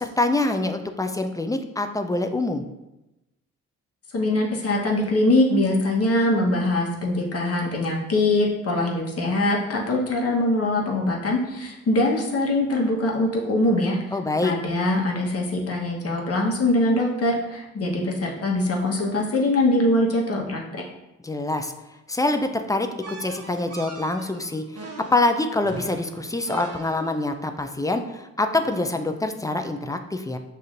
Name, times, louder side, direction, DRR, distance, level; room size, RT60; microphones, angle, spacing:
voice 1, 0.0-2.6 14.1-14.5 21.2-21.7 22.1-30.4, left 2 dB, 10° left, 6 dB, 0.4 m, -25 dB
voice 2, 4.1-14.0 14.4-20.6, left 1 dB, 45° left, -1 dB, 1.1 m, -22 dB
sound 1, 23.0-27.3, right 2 dB, 50° right, 0.8 m, -41 dB
6.4 x 2.7 x 2.5 m, 0.97 s
supercardioid pair, 55°, 32 cm